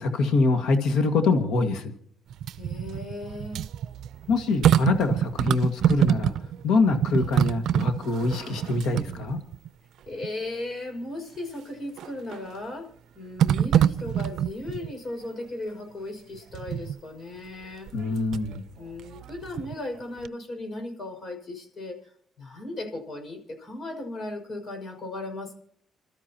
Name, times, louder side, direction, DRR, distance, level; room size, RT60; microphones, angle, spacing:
voice 1, 0.0-1.9 4.3-6.3 6.6-9.4 17.9-18.6, left 3 dB, 85° left, 6 dB, 1.9 m, -24 dB
sound 1, 2.3-6.6 6.9-9.7 10.2-10.3 12.0-12.5 13.4-14.9 16.5-17.0 17.9-18.6 19.0-20.0 20.2-20.3, right 10 dB, 75° right, 0.5 m, -25 dB
voice 2, 2.6-3.7 10.1-12.9 13.1-17.9 18.7-22.1 22.4-25.5, left 2 dB, 50° left, 5 dB, 6.0 m, -36 dB
29.5 x 13.0 x 3.0 m, 0.63 s
cardioid pair, 90°, 0 cm